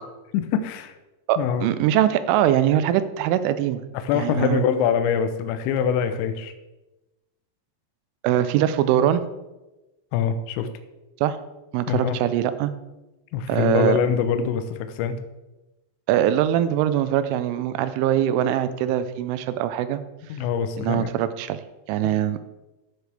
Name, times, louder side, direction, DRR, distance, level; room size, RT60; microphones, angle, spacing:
voice 1, 0.3-0.9 1.4-1.7 3.9-6.5 10.1-10.7 11.9-12.2 13.3-15.2 20.3-21.1, left 7 dB, 75° left, 9 dB, 2.8 m, -24 dB
voice 2, 1.3-3.8 4.1-4.6 8.2-9.3 11.2-11.4 11.7-12.7 13.5-14.0 16.1-20.0 20.8-21.6 21.9-22.4, right 11 dB, 85° right, 12 dB, 3.0 m, -22 dB
18.0 x 6.6 x 3.4 m, 1.1 s
omnidirectional pair, 5.7 m